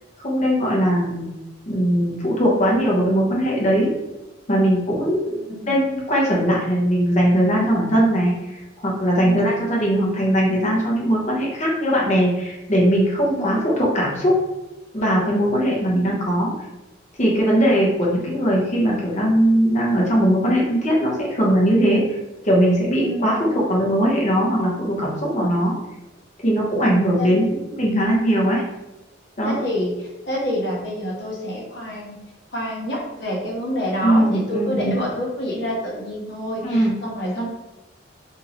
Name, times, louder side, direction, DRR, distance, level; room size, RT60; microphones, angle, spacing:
voice 1, 0.2-1.3 1.7-3.9 4.5-5.4 5.6-14.3 14.9-16.5 17.2-22.0 22.4-25.8 26.4-28.6 29.4-29.6 34.0-35.0 36.6-36.9, equal, 40° left, -4 dB, 0.9 m, -20 dB
voice 2, 5.3-5.7 9.2-9.6 13.3-13.7 15.9-16.2 17.5-17.9 23.0-23.5 27.2-27.5 29.4-32.2 32.5-37.5, equal, 65° left, -4 dB, 1.3 m, -28 dB
3.0 x 2.8 x 3.8 m, 1.0 s
head